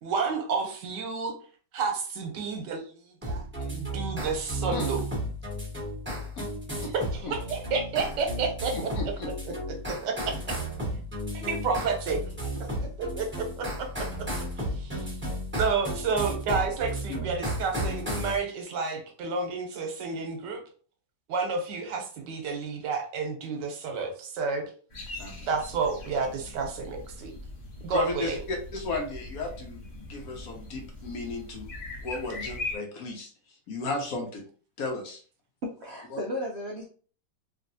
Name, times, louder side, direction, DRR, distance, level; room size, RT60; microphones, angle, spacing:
voice 1, 0.0-1.3 1.7-5.0 6.9-8.7 9.0-9.1 9.5-9.6 9.9-10.4 11.3-12.5 12.8-13.7 14.8-15.1 15.6-20.6 21.3-24.7 25.4-27.3 27.8-28.4, right 4 dB, 85° right, 3 dB, 1.4 m, -30 dB
sound 1, 3.2-18.4, equal, 10° right, 1.0 m, -33 dB
voice 2, 8.7-9.3 17.1-17.3 25.2-25.5 27.9-29.8 30.1-31.7 32.0-33.3 33.7-34.4 34.8-35.2 36.1-36.2, left 3 dB, 65° left, 2 dB, 1.0 m, -34 dB
sound 2, 24.9-32.8, left 2 dB, 40° left, 0.6 m, -41 dB
voice 3, 35.6-36.9, left 1 dB, 70° right, -2 dB, 0.6 m, -34 dB
3.1 x 2.6 x 2.6 m, 0.42 s
omnidirectional pair, 1.8 m